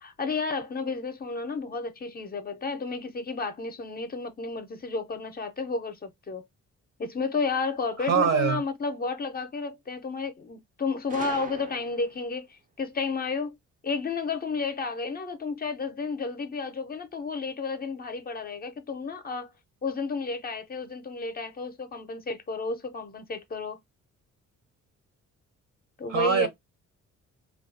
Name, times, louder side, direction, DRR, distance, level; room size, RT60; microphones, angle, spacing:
voice 1, 0.0-6.5 7.0-13.5 13.8-19.5 19.8-23.8 26.0-26.5, left 4 dB, 30° left, 0.5 m, -32 dB
voice 2, 8.0-8.6 26.1-26.5, right 7 dB, 60° right, 0.8 m, -23 dB
Gunshot gunfire, 11.1-12.3, right 4 dB, 30° right, 0.4 m, -41 dB
2.7 x 2.3 x 2.5 m
cardioid pair, 90°, 30 cm